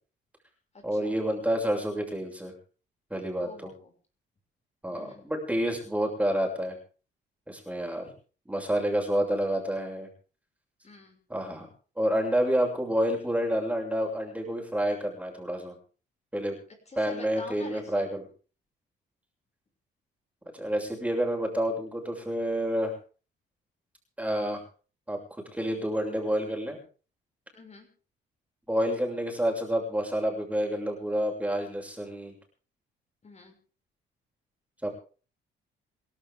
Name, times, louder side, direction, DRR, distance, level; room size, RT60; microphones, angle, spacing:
voice 1, 0.8-2.5 3.1-3.7 4.8-6.8 7.5-8.1 8.5-10.1 11.3-11.7 12.0-15.7 16.3-16.6 17.0-18.2 20.5-22.9 24.2-24.6 25.1-25.2 25.5-26.8 28.7-32.3 34.8-34.9, equal, 5° right, 1 dB, 7.1 m, -29 dB
voice 2, 3.4-3.9 4.9-5.3 10.8-11.2 16.9-18.0 27.5-27.9 33.2-33.5, left 3 dB, 35° left, 3 dB, 6.6 m, -46 dB
28.0 x 12.0 x 3.8 m, 0.39 s
cardioid pair, 90°, 20 cm